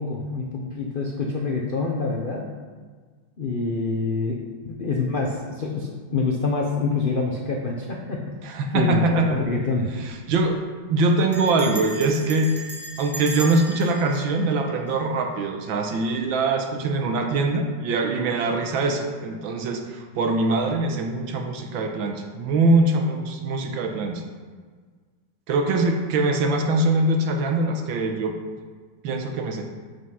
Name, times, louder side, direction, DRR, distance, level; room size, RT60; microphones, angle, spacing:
voice 1, 0.0-2.4 3.4-9.9, left 3 dB, 75° left, -1 dB, 0.4 m, -26 dB
voice 2, 8.4-9.4 10.0-10.6 10.9-12.6 13.0-24.2 25.5-28.3 29.0-29.7, right 2 dB, 75° right, 4 dB, 1.6 m, -23 dB
Bell, 9.2-9.6 9.8-9.9 10.1-10.5 11.3-15.4, right 1 dB, 10° right, 0.7 m, -38 dB
7.9 x 5.0 x 5.5 m, 1.5 s
omnidirectional pair, 2.2 m